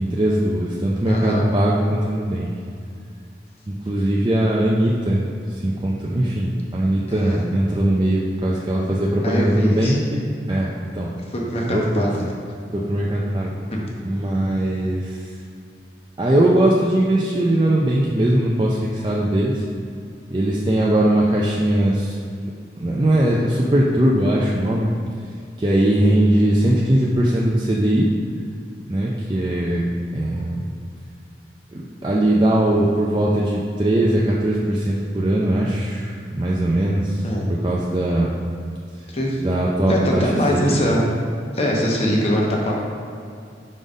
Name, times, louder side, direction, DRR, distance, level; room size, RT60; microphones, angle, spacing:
voice 1, 0.0-2.5 3.7-11.1 11.7-12.3 12.7-13.7 14.0-15.4 16.2-19.6 20.3-22.2 22.8-24.9 25.6-28.1 28.9-30.7 31.7-37.2 37.5-38.4 39.4-40.7, right 1 dB, 25° right, -4 dB, 0.4 m, -20 dB
voice 2, 1.1-1.4 7.1-7.4 9.2-10.0 11.3-12.1 37.2-37.5 39.1-39.4 39.9-41.1 41.5-42.8, equal, 35° left, -2 dB, 0.9 m, -22 dB
5.1 x 3.9 x 5.1 m, 2.4 s
head